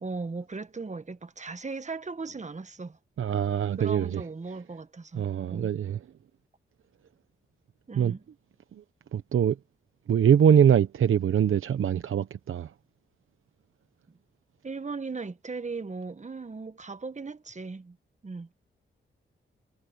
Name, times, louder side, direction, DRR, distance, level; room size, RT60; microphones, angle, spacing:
voice 1, 0.0-3.0 3.8-5.7 7.9-8.2 14.1-14.2 14.6-18.0 18.2-18.5, right 4 dB, 35° right, 1.5 m, -37 dB
voice 2, 3.2-4.2 5.1-6.0 7.9-8.2 8.7-8.8 9.1-9.6 10.1-12.7, right 8 dB, 75° right, 0.9 m, -23 dB
cardioid pair, 65°, 21 cm